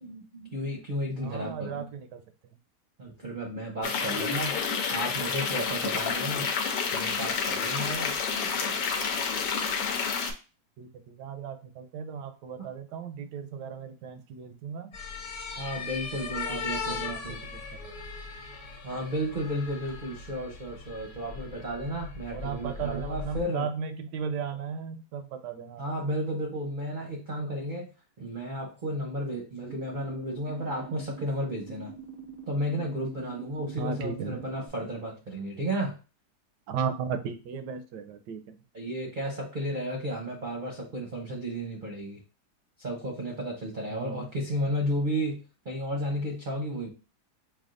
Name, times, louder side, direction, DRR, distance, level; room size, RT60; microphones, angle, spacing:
voice 1, 0.0-1.9 3.0-6.5 6.9-8.9 12.6-12.7 15.6-17.4 18.8-23.7 25.8-27.9 28.2-31.9 32.5-36.0 38.7-42.2 42.8-46.9, equal, 50° right, 0 dB, 0.6 m, -33 dB
voice 2, 1.2-2.2 4.0-4.3 10.8-15.0 16.3-17.9 22.3-26.1 33.8-34.4 36.7-38.6 43.9-44.3, right 7 dB, 90° right, 8 dB, 1.2 m, -36 dB
sound 1, 3.8-10.3, left 6 dB, 90° left, 1.3 m, -29 dB
sound 2, 14.9-23.4, left 5 dB, 55° left, 1.1 m, -38 dB
sound 3, 29.7-34.7, right 6 dB, 30° left, 1.0 m, -44 dB
5.9 x 2.3 x 2.5 m, 0.33 s
omnidirectional pair, 1.8 m